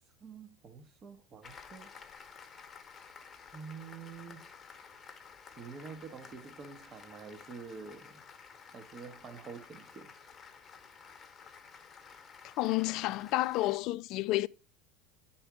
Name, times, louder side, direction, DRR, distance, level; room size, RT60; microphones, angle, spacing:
voice 1, 0.2-1.9 3.5-4.5 5.6-8.2 8.7-10.1, right 5 dB, 35° right, 1.1 m, -47 dB
Applause, 1.4-13.8, left 6 dB, 30° left, 1.1 m, -53 dB
voice 2, 12.6-14.5, left 18 dB, 55° left, 0.3 m, -30 dB
9.2 x 4.3 x 4.9 m
hypercardioid pair, 95°, 0 cm